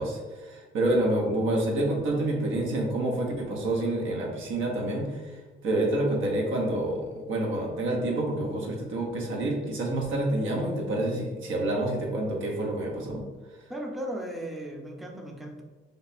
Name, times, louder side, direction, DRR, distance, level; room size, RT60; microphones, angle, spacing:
voice 1, 0.0-5.3 5.6-13.2, right 1 dB, 85° right, -1 dB, 0.9 m, -28 dB
voice 2, 13.7-15.6, right 1 dB, ahead, 1 dB, 0.5 m, -36 dB
3.3 x 2.1 x 4.1 m, 1.3 s
cardioid pair, 90°, 20 cm